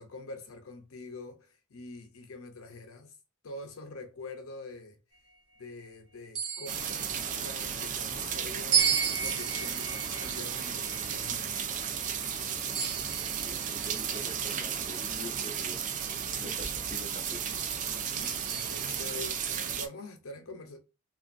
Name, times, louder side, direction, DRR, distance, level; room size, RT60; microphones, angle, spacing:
voice 1, 0.0-3.2 3.4-5.0 5.6-11.9 12.3-12.6 16.3-16.6 17.8-20.8, left 3 dB, 65° left, 0.7 m, -45 dB
sound 1, 6.3-7.9 8.7-12.2 12.7-14.5 15.2-15.3 18.2-19.7, right 7 dB, 90° right, 1.1 m, -34 dB
sound 2, 6.7-19.9, right 7 dB, 35° right, 0.4 m, -34 dB
voice 2, 12.7-15.8 16.3-17.4, left 1 dB, 25° left, 0.5 m, -46 dB
2.9 x 2.4 x 2.5 m
head